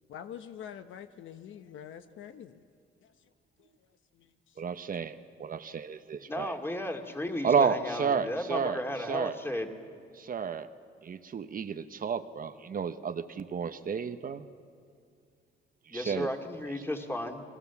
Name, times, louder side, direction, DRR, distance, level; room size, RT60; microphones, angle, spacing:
voice 1, 0.1-2.6 3.0-3.3 3.6-3.9 4.1-4.6, left 9 dB, 75° left, 9 dB, 1.1 m, -46 dB
voice 2, 4.6-6.6 7.4-8.8 9.1-9.4 10.1-10.7 11.0-14.5 15.9-16.3, right 6 dB, 45° right, 10 dB, 1.0 m, -31 dB
voice 3, 6.3-9.7 15.9-17.4, left 1 dB, 10° left, 3 dB, 2.6 m, -34 dB
29.5 x 22.0 x 7.2 m, 2.2 s
cardioid pair, 90°, 20 cm